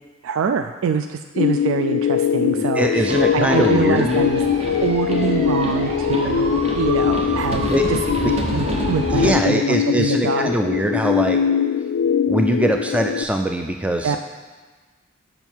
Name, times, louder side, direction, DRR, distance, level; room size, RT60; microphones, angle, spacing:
voice 1, 0.2-4.4 4.7-10.5 14.0-14.2, right 6 dB, 80° right, 7 dB, 0.3 m, -24 dB
sound 1, 1.4-13.2, left 8 dB, 80° left, 0.3 m, -22 dB
voice 2, 2.5-4.2 6.2-6.3 7.7-7.8 8.2-8.3 9.1-11.4 12.3-14.2, right 1 dB, 5° right, 4 dB, 0.4 m, -22 dB
sound 2, 3.1-9.3, right 1 dB, 30° right, 1.0 m, -27 dB
7.1 x 6.3 x 4.5 m, 1.3 s
head